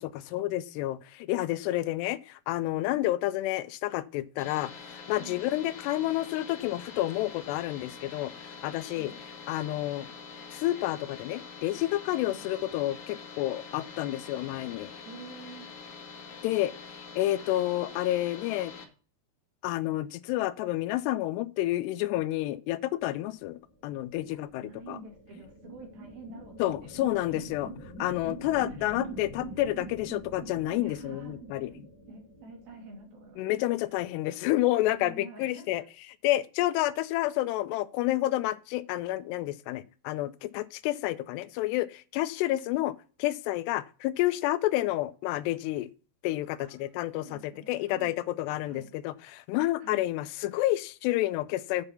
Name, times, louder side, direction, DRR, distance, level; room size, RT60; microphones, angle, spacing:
voice 1, 0.0-8.3 8.6-9.1 9.5-10.1 10.5-14.9 16.4-16.7 17.2-18.7 19.6-25.0 26.6-27.7 28.0-31.7 33.4-35.8 36.2-45.9 46.2-51.9, left 15 dB, 85° left, 2.6 m, -29 dB
sound 1, 4.4-18.8, left 5 dB, 50° left, 2.6 m, -45 dB
voice 2, 8.9-9.2 12.3-12.4 15.1-15.8 24.3-27.6 28.2-29.3 30.8-31.7 32.1-33.4 34.9-35.9 36.8-36.9 46.6-48.1 48.6-48.9 49.8-50.0, right 3 dB, 60° right, 4.2 m, -49 dB
sound 2, 23.8-33.6, right 1 dB, 20° left, 3.2 m, -45 dB
8.2 x 5.4 x 6.8 m
omnidirectional pair, 4.9 m